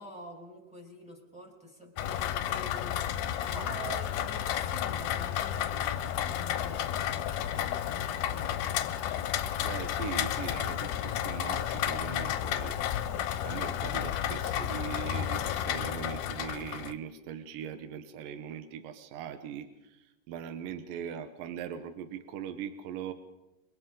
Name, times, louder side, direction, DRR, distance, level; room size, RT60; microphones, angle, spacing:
voice 1, 0.0-8.9, right 1 dB, ahead, 0 dB, 4.4 m, -47 dB
Rain, 2.0-16.9, left 10 dB, 75° left, 2.1 m, -32 dB
voice 2, 9.6-12.8 13.4-23.1, right 8 dB, 80° right, 9 dB, 2.7 m, -40 dB
29.0 x 23.5 x 3.8 m, 0.99 s
omnidirectional pair, 3.9 m